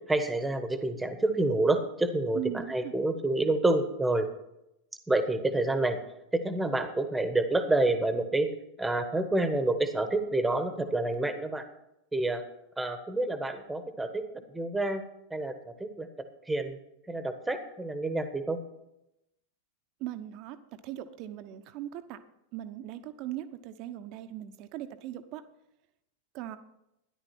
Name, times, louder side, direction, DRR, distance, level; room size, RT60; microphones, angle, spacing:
voice 1, 0.1-2.4 2.7-4.3 5.1-6.0 6.3-8.5 8.8-11.6 12.1-12.4 12.8-14.2 14.5-15.0 15.3-16.1 16.5-16.8 17.1-18.6, right 2 dB, 5° right, 9 dB, 1.3 m, -28 dB
voice 2, 2.3-2.9 20.0-20.6 20.8-22.2 22.5-25.4 26.3-26.6, right 12 dB, 40° right, 10 dB, 0.9 m, -39 dB
13.0 x 10.5 x 4.3 m, 0.86 s
figure-of-eight pair, 90°, 0 cm